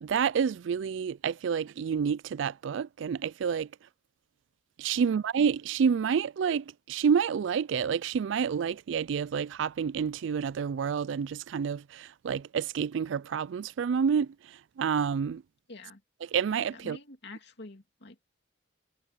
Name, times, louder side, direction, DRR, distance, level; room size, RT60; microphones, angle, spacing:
voice 1, 0.0-3.7 4.8-15.4 16.2-17.0, right 7 dB, 65° right, 0.3 m, -29 dB
voice 2, 15.7-16.0 16.7-18.2, left 2 dB, 60° left, 2.7 m, -47 dB
head